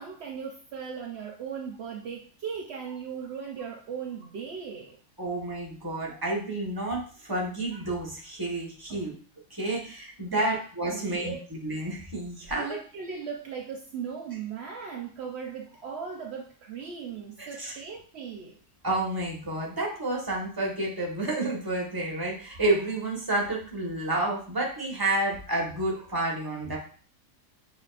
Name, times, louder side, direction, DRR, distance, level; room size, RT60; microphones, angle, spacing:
voice 1, 0.0-5.0 8.9-9.1 10.3-10.6 10.9-11.5 12.5-18.6, right 6 dB, 75° right, 0 dB, 0.6 m, -38 dB
voice 2, 5.2-9.1 9.5-12.7 17.4-17.7 18.8-26.8, right 2 dB, 15° right, -2 dB, 1.1 m, -30 dB
6.8 x 3.1 x 2.4 m, 0.42 s
omnidirectional pair, 1.8 m